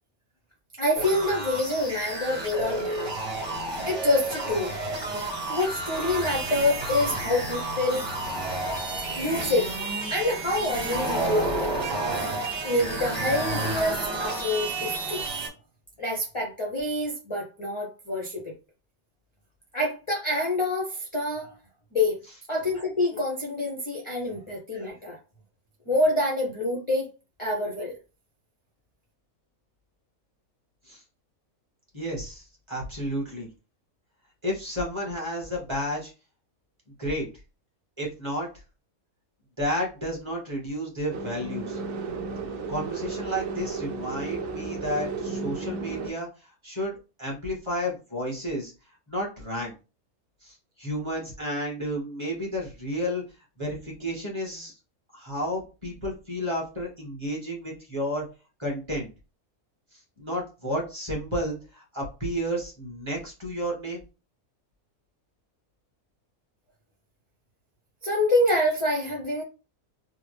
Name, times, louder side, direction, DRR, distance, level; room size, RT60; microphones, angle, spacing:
voice 1, 0.7-3.1 3.8-5.2 5.5-8.0 9.2-9.7 10.1-11.7 12.6-15.3 16.0-18.5 19.7-21.5 21.9-22.2 22.5-25.2 25.9-27.1 27.4-28.0 68.0-69.4, left 1 dB, 35° left, 0.5 m, -27 dB
sound 1, 0.9-15.5, right 2 dB, 40° right, 1.5 m, -30 dB
voice 2, 31.9-33.5 34.4-36.1 37.0-37.3 38.0-38.5 39.6-41.8 42.7-48.7 49.1-49.7 50.4-53.2 53.6-54.7 55.1-58.2 58.6-59.1 59.9-64.0, equal, 20° right, 1.3 m, -31 dB
sound 2, 41.1-46.1, right 4 dB, 70° right, 0.9 m, -33 dB
3.5 x 2.1 x 3.3 m
omnidirectional pair, 1.6 m